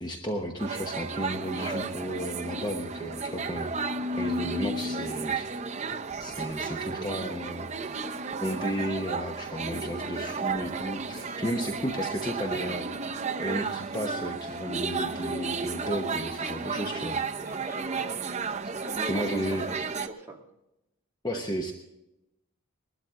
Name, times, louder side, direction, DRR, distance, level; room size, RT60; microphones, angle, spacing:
voice 1, 0.0-3.7 4.2-5.5 6.2-7.7 8.4-12.9 13.4-17.2 19.1-19.7 21.2-21.7, equal, 20° left, 2 dB, 1.0 m, -33 dB
sound 1, 0.6-20.1, right 4 dB, 30° right, 0.6 m, -33 dB
voice 2, 1.6-1.9 17.4-18.2 18.8-20.4 21.3-21.5, right 1 dB, 10° right, -2 dB, 2.0 m, -39 dB
20.5 x 12.5 x 3.7 m, 0.89 s
head